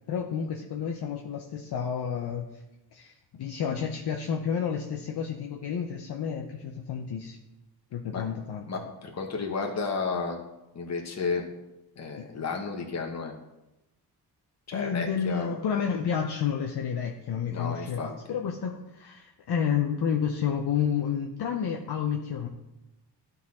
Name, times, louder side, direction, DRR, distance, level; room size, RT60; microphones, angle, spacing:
voice 1, 0.1-2.5 2.9-7.4 7.9-8.6 12.2-12.3 14.7-22.5, left 7 dB, 70° left, 2 dB, 0.8 m, -30 dB
voice 2, 8.7-10.4 10.7-11.4 12.0-13.3 14.7-15.6 17.5-18.4, left 4 dB, 40° left, 1 dB, 1.2 m, -32 dB
12.0 x 4.1 x 4.2 m, 0.94 s
cardioid pair, 100°, 41 cm